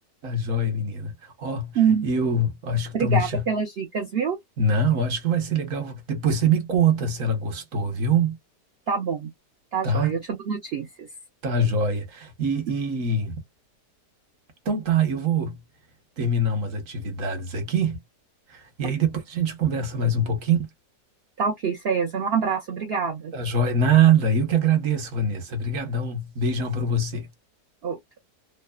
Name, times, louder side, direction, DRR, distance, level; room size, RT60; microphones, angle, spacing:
voice 1, 0.2-1.7 2.0-3.4 4.6-8.4 9.8-10.1 11.4-13.3 14.6-15.6 16.2-18.0 18.5-20.7 23.3-27.3, right 3 dB, 55° right, 1.2 m, -24 dB
voice 2, 1.8-2.1 2.9-4.4 8.9-9.3 9.7-11.1 21.4-23.3 27.8-28.0, right 6 dB, 75° right, 0.5 m, -25 dB
2.9 x 2.0 x 2.2 m
omnidirectional pair, 1.8 m